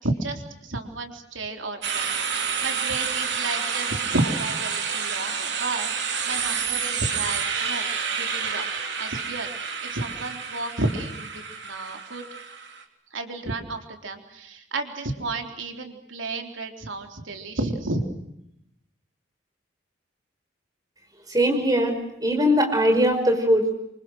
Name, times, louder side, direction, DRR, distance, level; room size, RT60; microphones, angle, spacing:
voice 1, 0.0-7.8 8.2-8.6 9.0-11.3 11.6-12.3 13.1-18.0, right 2 dB, 85° right, 4 dB, 3.8 m, -31 dB
sound 1, 1.8-12.8, right 6 dB, 60° right, 3.5 m, -29 dB
voice 2, 21.3-23.8, equal, 20° right, 4 dB, 5.3 m, -21 dB
27.5 x 26.0 x 6.4 m, 0.79 s
head